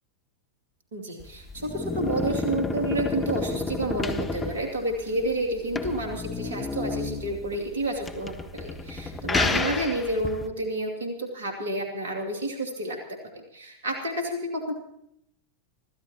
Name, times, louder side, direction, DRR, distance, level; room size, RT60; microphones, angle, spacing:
voice 1, 0.9-14.7, right 1 dB, 60° right, 3 dB, 2.8 m, -30 dB
sound 1, 1.2-10.5, left 3 dB, 15° left, 1.3 m, -31 dB
26.0 x 15.0 x 3.0 m, 0.73 s
figure-of-eight pair, 90°, 0 cm